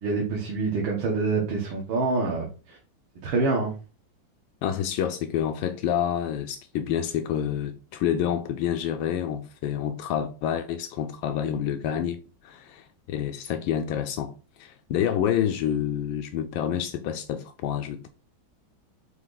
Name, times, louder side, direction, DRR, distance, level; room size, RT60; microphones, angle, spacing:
voice 1, 0.0-2.8 3.2-3.7, right 3 dB, 85° right, 2.1 m, -26 dB
voice 2, 4.6-14.3 14.6-18.1, left 9 dB, 85° left, 1.4 m, -28 dB
8.6 x 3.0 x 3.9 m
omnidirectional pair, 2.1 m